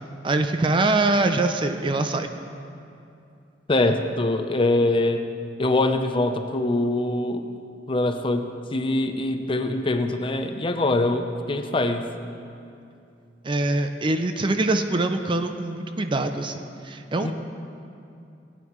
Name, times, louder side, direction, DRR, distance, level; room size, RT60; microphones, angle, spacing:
voice 1, 0.2-2.3 13.4-17.3, right 2 dB, 30° right, 7 dB, 0.4 m, -24 dB
voice 2, 3.7-5.2 5.6-7.4 7.9-12.1 17.2-17.3, left 2 dB, 30° left, 6 dB, 0.6 m, -23 dB
18.0 x 9.2 x 3.1 m, 2.6 s
head